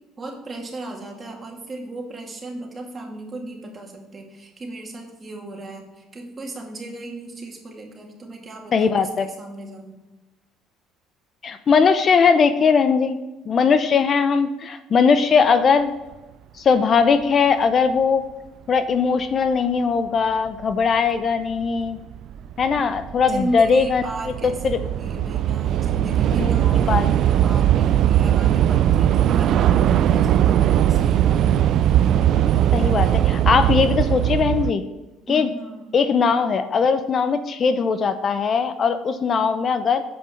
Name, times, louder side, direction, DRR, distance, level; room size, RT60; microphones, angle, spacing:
voice 1, 0.2-10.0 23.3-31.7 35.3-36.0, right 2 dB, 30° right, 1 dB, 2.2 m, -35 dB
voice 2, 8.7-9.3 11.4-13.2 13.5-15.9 16.6-18.2 18.7-22.0 22.6-24.0 24.6-24.8 26.4-26.5 26.9-27.0 32.7-34.8 35.3-35.5 35.9-40.0, left 5 dB, 40° left, 10 dB, 0.6 m, -19 dB
Train / Subway metro underground, 20.7-20.8 21.6-21.9 22.1-34.7, right 11 dB, 60° right, 0.3 m, -19 dB
7.8 x 5.4 x 6.4 m, 1.1 s
supercardioid pair, 95°, 0 cm